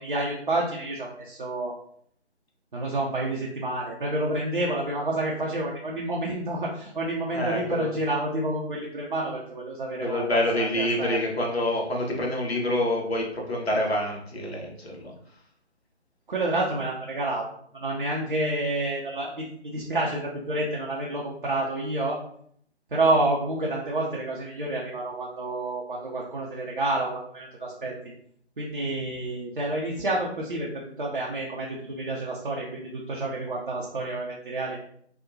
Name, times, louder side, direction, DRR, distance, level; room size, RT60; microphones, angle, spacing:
voice 1, 0.0-1.7 2.7-11.2 16.3-17.5 17.7-22.2 22.9-27.9 28.6-34.8, right 2 dB, 45° right, -3 dB, 0.5 m, -29 dB
voice 2, 7.3-7.9 10.0-15.1, left 1 dB, 60° left, -1 dB, 0.9 m, -27 dB
2.7 x 2.1 x 2.5 m, 0.64 s
figure-of-eight pair, 150°, 35 cm